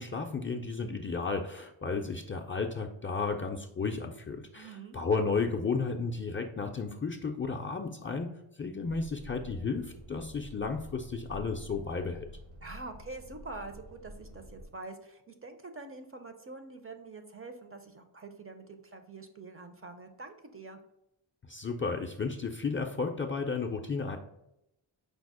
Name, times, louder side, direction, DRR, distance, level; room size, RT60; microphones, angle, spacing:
voice 1, 0.0-12.3 21.5-24.2, left 4 dB, 25° left, 1 dB, 0.4 m, -33 dB
voice 2, 4.5-5.0 12.6-20.8, right 3 dB, 30° right, 6 dB, 0.5 m, -45 dB
sound 1, 8.9-14.7, equal, 75° right, 1.1 m, -49 dB
5.1 x 2.0 x 4.7 m, 0.84 s
cardioid pair, 65°, 48 cm